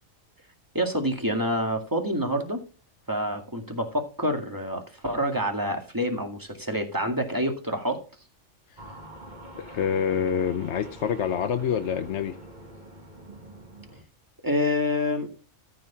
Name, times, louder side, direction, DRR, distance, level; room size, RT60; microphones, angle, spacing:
voice 1, 0.7-2.6 3.1-8.0 14.4-15.3, equal, 15° right, 2.0 m, -27 dB
sound 1, 8.8-14.0, right 1 dB, 40° right, 2.0 m, -45 dB
voice 2, 9.6-12.4, left 8 dB, 70° left, 1.0 m, -27 dB
14.0 x 5.2 x 5.7 m
omnidirectional pair, 1.2 m